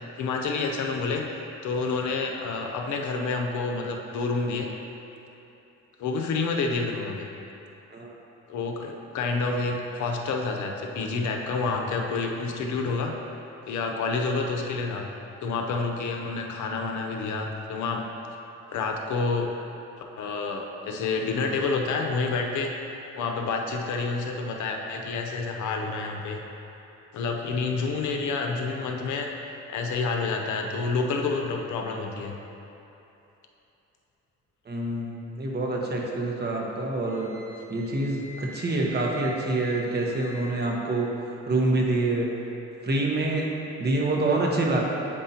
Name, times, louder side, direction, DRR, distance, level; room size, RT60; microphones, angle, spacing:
voice 1, 0.2-1.2 1.6-4.7 6.0-7.3 8.5-13.1 13.7-15.1 15.4-18.0 18.7-19.5 20.2-22.7 23.1-26.4 27.1-29.3 29.7-32.3, left 4 dB, 75° left, 2 dB, 0.7 m, -28 dB
voice 2, 34.7-37.3 37.7-41.1 41.5-42.3 42.8-43.5 43.8-44.8, right 2 dB, 35° right, -1 dB, 1.1 m, -26 dB
Wind instrument woodwind instrument, 37.0-40.6, equal, 25° left, 1.0 m, -45 dB
8.5 x 5.3 x 2.9 m, 3.0 s
cardioid pair, 90°, 30 cm